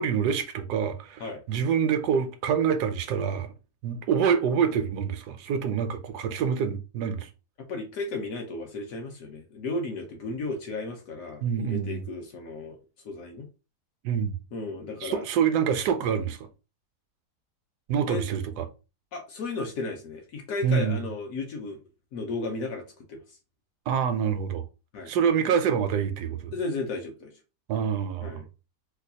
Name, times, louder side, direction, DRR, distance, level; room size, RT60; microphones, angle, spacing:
voice 1, 0.0-3.5 3.8-7.3 11.4-12.0 14.0-14.4 15.0-16.5 17.9-18.7 20.6-21.0 23.9-24.6 25.1-26.5 27.7-28.4, right 7 dB, 75° right, 1.1 m, -26 dB
voice 2, 7.7-12.8 13.0-13.5 14.5-15.2 18.1-18.2 19.1-21.8 22.1-23.2 24.9-25.1 26.5-27.4 28.2-28.5, left 3 dB, 65° left, 1.0 m, -34 dB
4.4 x 2.3 x 2.7 m
omnidirectional pair, 1.8 m